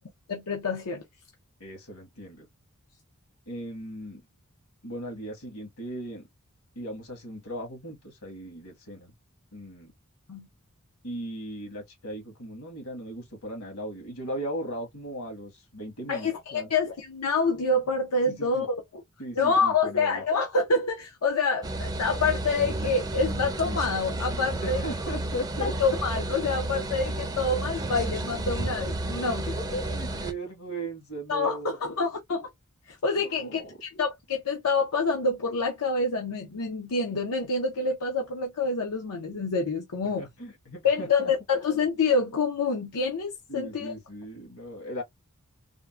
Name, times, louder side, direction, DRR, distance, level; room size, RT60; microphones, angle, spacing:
voice 1, 0.3-1.0 10.3-10.5 16.1-18.8 19.4-24.8 25.6-29.6 31.3-32.5 32.9-40.2 40.8-43.9, left 3 dB, 90° left, 0.6 m, -27 dB
voice 2, 1.6-2.4 3.5-4.3 4.8-6.2 6.7-9.1 9.5-9.9 11.0-16.7 18.3-18.7 19.2-20.2 24.6-25.7 29.5-32.1 33.2-33.7 40.2-41.3 43.5-45.0, right 1 dB, 70° left, 1.4 m, -38 dB
sound 1, 21.6-30.3, right 1 dB, 15° right, 0.4 m, -32 dB
3.6 x 2.1 x 2.3 m
head